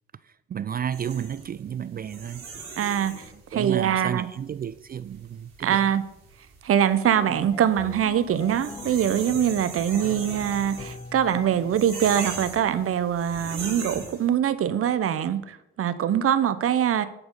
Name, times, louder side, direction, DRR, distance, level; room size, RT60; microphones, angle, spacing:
voice 1, 0.2-2.5 3.3-5.9 7.2-7.3, right 8 dB, 30° right, 0.4 m, -32 dB
sound 1, 0.9-14.3, right 4 dB, 70° right, 3.4 m, -40 dB
voice 2, 2.8-3.2 3.5-4.3 5.6-6.0 6.6-17.1, right 9 dB, 50° right, 0.8 m, -23 dB
sound 2, 7.0-9.7 10.0-11.9, left 5 dB, 20° left, 0.6 m, -41 dB
10.5 x 4.6 x 5.4 m
hypercardioid pair, 55°, 30 cm